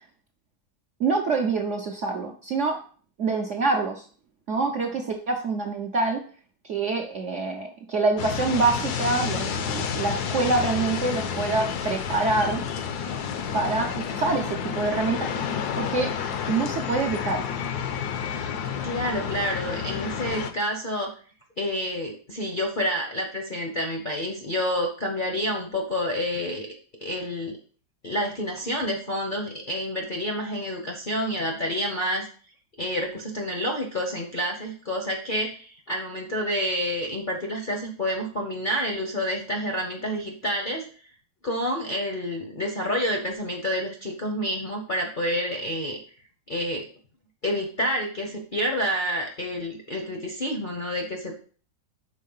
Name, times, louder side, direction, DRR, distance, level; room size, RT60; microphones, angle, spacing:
voice 1, 1.0-2.8 3.2-4.0 4.5-6.2 6.6-12.6 13.5-15.3 15.7-16.1 16.5-17.4, right 3 dB, 60° right, 1 dB, 0.8 m, -26 dB
sound 1, 8.2-20.5, left 7 dB, 70° left, 1.1 m, -30 dB
voice 2, 18.8-21.1 21.6-26.7 27.0-27.6 28.0-32.3 32.8-40.8 41.4-46.0 46.5-46.8 47.4-51.4, equal, 40° left, 0 dB, 0.7 m, -28 dB
5.5 x 4.2 x 5.4 m, 0.42 s
omnidirectional pair, 2.0 m